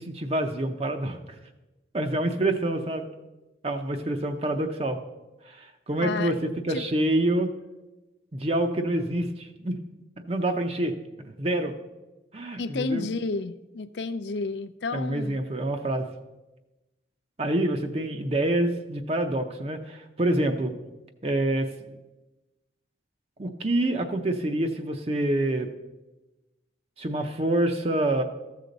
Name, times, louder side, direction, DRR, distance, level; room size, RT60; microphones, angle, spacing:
voice 1, 0.0-1.4 1.9-3.0 3.6-5.0 5.5-7.5 8.3-9.8 10.2-11.7 12.3-13.1 14.9-16.1 17.4-20.7 21.2-22.0 23.4-25.7 27.0-28.2, right 1 dB, 30° right, 6 dB, 0.6 m, -27 dB
voice 2, 6.0-6.3 6.7-6.8 12.6-15.4, left 3 dB, 70° left, 13 dB, 0.5 m, -31 dB
14.0 x 6.6 x 4.0 m, 1.1 s
head